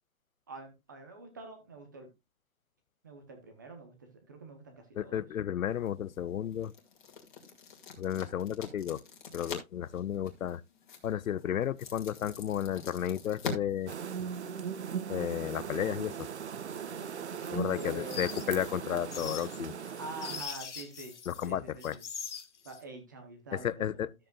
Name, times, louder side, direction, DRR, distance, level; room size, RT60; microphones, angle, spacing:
voice 1, 0.5-2.1 3.0-5.2 17.7-18.2 20.0-21.2 21.4-22.0 22.6-24.0, right 2 dB, 15° right, 0.8 m, -46 dB
voice 2, 5.0-6.7 8.0-9.0 9.3-10.6 11.0-13.9 15.1-16.3 17.5-19.8 21.3-22.0 23.5-24.1, left 10 dB, 70° left, 0.6 m, -33 dB
Pages Flipping, 5.7-14.7, left 5 dB, 35° left, 2.2 m, -45 dB
sound 1, 13.9-20.4, right 7 dB, 50° right, 0.8 m, -38 dB
sound 2, 17.4-21.5 21.8-22.8, left 7 dB, 50° left, 1.5 m, -42 dB
13.5 x 7.6 x 2.3 m
hypercardioid pair, 170°, 43 cm